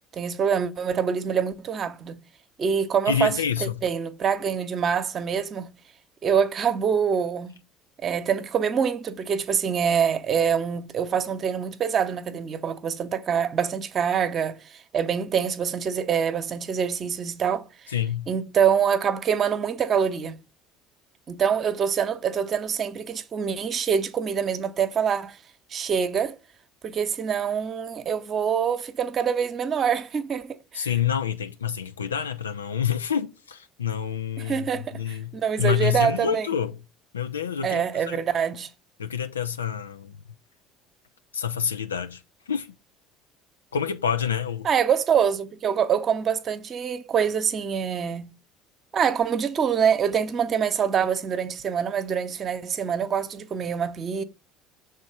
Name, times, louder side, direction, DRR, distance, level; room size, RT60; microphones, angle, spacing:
voice 1, 0.1-2.2 2.6-5.7 6.2-7.6 8.0-17.7 18.3-20.4 21.3-25.4 25.7-26.4 26.8-30.9 34.4-36.5 37.6-38.7 44.6-48.3 48.9-54.2, right 7 dB, 40° right, 0.8 m, -25 dB
voice 2, 3.1-3.8 17.9-18.3 30.7-36.8 37.1-38.2 39.0-40.2 41.3-42.2 42.5-42.7 43.7-44.7, left 8 dB, 85° left, 0.5 m, -28 dB
6.3 x 3.8 x 5.6 m
figure-of-eight pair, 65°, 0 cm